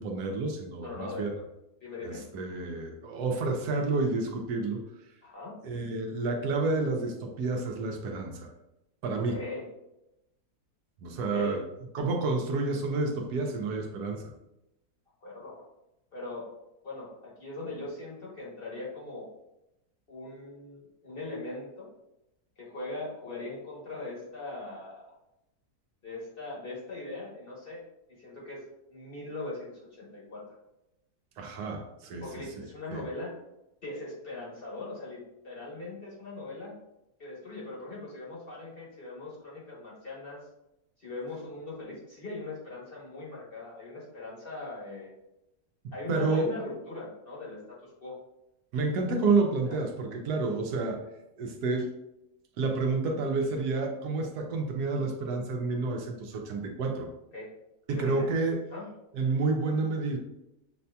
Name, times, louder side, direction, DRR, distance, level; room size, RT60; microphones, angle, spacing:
voice 1, 0.0-1.3 2.0-4.8 5.6-8.5 9.0-9.4 11.0-11.6 11.9-14.3 31.4-32.3 32.9-33.0 45.8-46.5 48.7-51.0 51.4-51.9 52.6-57.1 57.9-58.6 59.1-60.2, right 3 dB, 80° right, 3 dB, 1.2 m, -29 dB
voice 2, 0.8-1.4 1.8-2.2 5.2-5.6 9.3-9.7 11.3-11.6 15.2-15.7 16.1-16.5 16.8-19.3 20.1-21.9 22.6-25.2 26.0-27.8 28.1-30.6 32.2-33.3 33.8-36.7 37.2-40.4 41.0-45.1 45.9-48.2 49.7-49.8 57.3-57.5 57.9-58.3 58.7-58.9, left 2 dB, 40° left, -5 dB, 1.1 m, -40 dB
6.5 x 2.7 x 2.2 m, 0.90 s
omnidirectional pair, 1.7 m